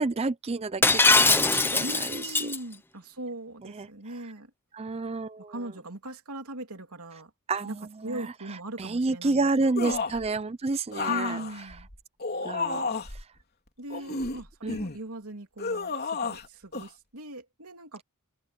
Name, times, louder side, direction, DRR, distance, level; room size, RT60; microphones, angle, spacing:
voice 1, 0.0-2.4 3.6-3.9 4.7-5.5 7.5-8.3 8.8-11.4 12.4-13.3 14.6-14.8, right 3 dB, 30° right, 0.5 m, -30 dB
Shatter, 0.8-2.6, left 3 dB, 10° left, 0.8 m, -21 dB
voice 2, 1.8-4.5 5.5-7.3 7.6-7.8 8.0-9.8 11.1-11.9 13.8-18.0, right 1 dB, 90° right, 3.2 m, -40 dB
sound 1, 9.8-10.3 10.9-13.2 13.9-15.0 15.6-16.5 16.7-16.9, left 4 dB, 45° left, 3.7 m, -31 dB
head